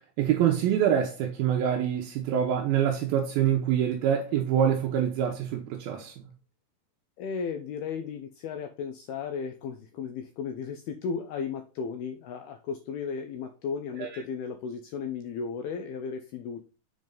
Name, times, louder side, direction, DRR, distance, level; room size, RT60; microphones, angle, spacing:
voice 1, 0.2-6.1 14.0-14.2, right 9 dB, 85° right, 2.1 m, -25 dB
voice 2, 7.2-16.6, left 6 dB, 80° left, 2.3 m, -35 dB
7.1 x 5.4 x 3.8 m
omnidirectional pair, 5.4 m